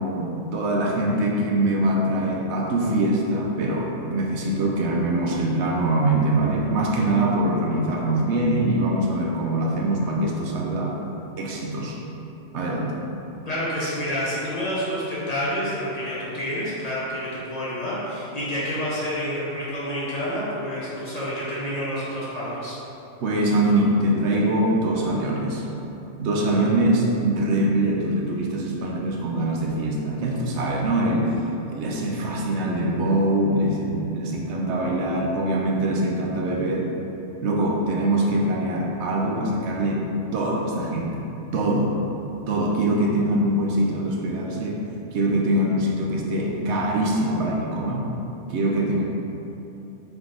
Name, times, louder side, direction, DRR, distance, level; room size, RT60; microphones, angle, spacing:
voice 1, 0.0-11.0 11.4-12.0 12.5-13.0 23.2-25.6 26.2-37.0 37.4-41.2 41.5-42.0 42.5-44.8 45.1-48.1 48.5-49.0, right 1 dB, 70° right, -2 dB, 0.8 m, -23 dB
voice 2, 13.5-22.7, equal, 40° left, -9 dB, 0.8 m, -28 dB
3.5 x 3.1 x 3.7 m, 3.0 s
omnidirectional pair, 1.2 m